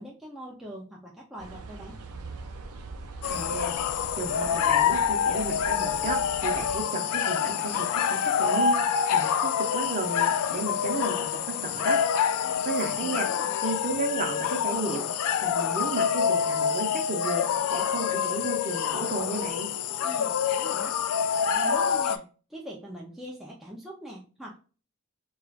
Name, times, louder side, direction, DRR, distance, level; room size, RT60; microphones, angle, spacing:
voice 1, 0.0-2.0 12.4-12.5 13.0-13.5 20.0-21.0 21.5-24.6, equal, ahead, -4 dB, 0.5 m, -42 dB
sound 1, 1.4-6.8, right 3 dB, 85° right, 0.5 m, -42 dB
sound 2, 3.2-22.2, left 7 dB, 85° left, 0.3 m, -26 dB
voice 2, 3.3-3.7 4.1-8.8 9.1-12.0 12.6-13.3 13.6-15.0 15.4-19.7, right 2 dB, 35° right, 2 dB, 0.7 m, -33 dB
sound 3, 5.4-13.7, left 3 dB, 40° left, 0.9 m, -48 dB
4.7 x 2.4 x 2.4 m, 0.37 s
head